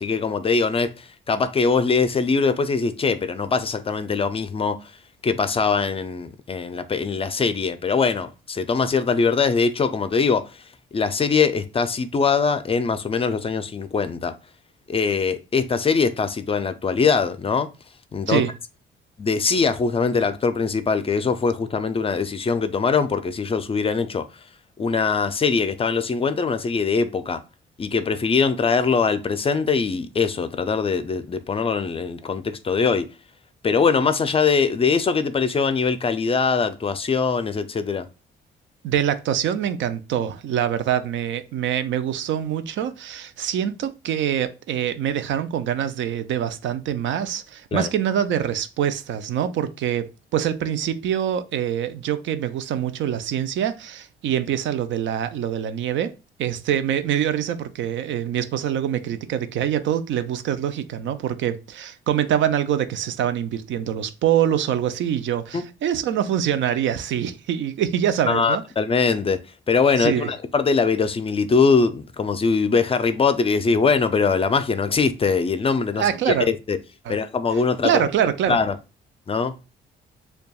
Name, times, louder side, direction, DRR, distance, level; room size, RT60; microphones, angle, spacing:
voice 1, 0.0-4.8 5.2-10.5 10.9-14.3 14.9-17.7 18.1-18.4 19.2-24.2 24.8-27.4 27.8-33.1 33.6-38.1 47.7-47.9 65.5-65.6 68.3-69.4 69.7-76.8 77.1-78.1 78.5-78.8 79.3-79.6, left 5 dB, 30° left, 0.4 m, -22 dB
voice 2, 38.8-50.1 50.3-56.1 56.4-68.6 69.9-70.3 76.0-76.5 77.0-77.2 77.8-78.6, right 10 dB, 70° right, 0.5 m, -24 dB
6.7 x 2.3 x 2.3 m
cardioid pair, 90°, 20 cm